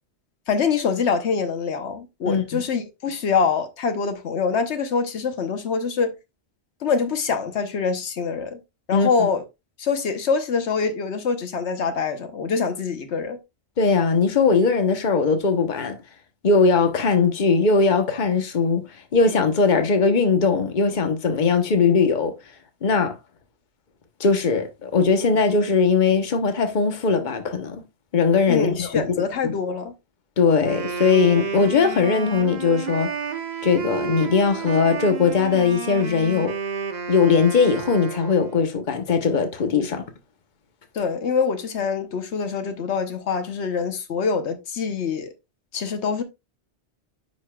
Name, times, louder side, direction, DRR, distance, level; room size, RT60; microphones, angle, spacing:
voice 1, 0.5-6.2 6.8-8.6 8.9-9.4 9.8-13.4 28.5-29.9 40.9-45.3 45.7-46.2, left 5 dB, 85° left, 1.2 m, -24 dB
voice 2, 2.3-2.6 8.9-9.3 13.8-16.0 16.4-18.8 19.1-22.3 22.8-23.1 24.2-27.8 28.1-29.0 30.4-33.1 33.6-36.5 37.1-40.0, left 5 dB, 45° left, 1.1 m, -20 dB
Wind instrument woodwind instrument, 30.5-38.7, right 5 dB, 45° right, 1.0 m, -31 dB
9.3 x 5.4 x 2.3 m
omnidirectional pair, 1.1 m